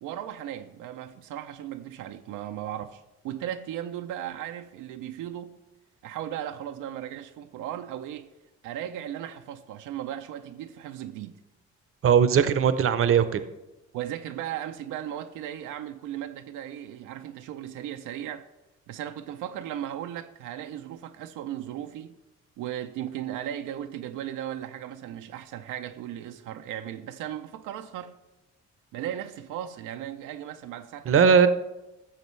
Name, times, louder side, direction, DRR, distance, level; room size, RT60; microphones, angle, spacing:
voice 1, 0.0-5.6 6.0-8.3 8.6-11.4 13.9-18.5 18.9-22.2 22.6-28.1 28.9-31.4, right 11 dB, 90° right, 0.5 m, -36 dB
voice 2, 12.0-13.4 31.1-31.5, right 7 dB, 45° right, 0.7 m, -19 dB
15.0 x 6.6 x 3.2 m
cardioid pair, 90°, 30 cm